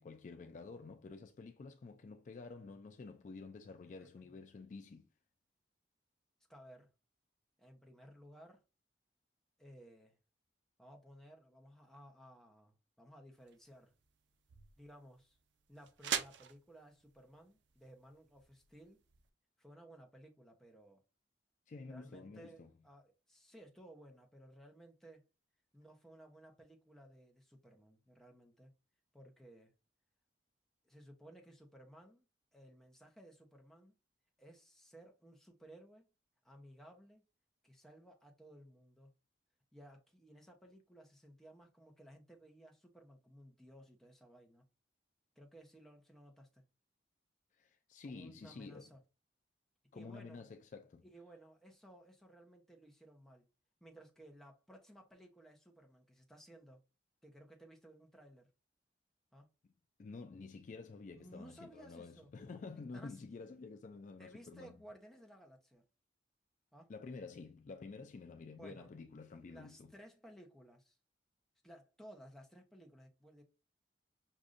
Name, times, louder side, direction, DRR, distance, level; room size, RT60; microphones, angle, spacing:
voice 1, 0.0-5.1 21.7-22.7 47.6-48.9 49.9-51.0 60.0-64.8 66.9-69.9, left 4 dB, 45° left, 0.3 m, -50 dB
voice 2, 4.0-4.3 6.5-6.9 7.6-8.6 9.6-10.2 10.8-13.9 14.8-15.4 15.7-19.0 19.6-21.0 21.9-25.2 25.7-28.7 29.1-29.7 30.8-32.3 32.5-33.9 34.4-36.1 36.4-37.2 37.6-39.1 39.7-44.6 45.4-46.6 48.0-49.0 49.9-50.5 51.0-53.5 53.8-56.8 57.2-58.5 59.3-59.5 61.1-62.3 62.9-63.2 64.2-65.8 66.7-66.9 68.5-68.9 69.4-71.0 71.6-73.4, right 1 dB, ahead, 0.8 m, -58 dB
sound 1, 13.4-19.3, right 9 dB, 80° right, 0.5 m, -45 dB
6.3 x 2.6 x 2.5 m
head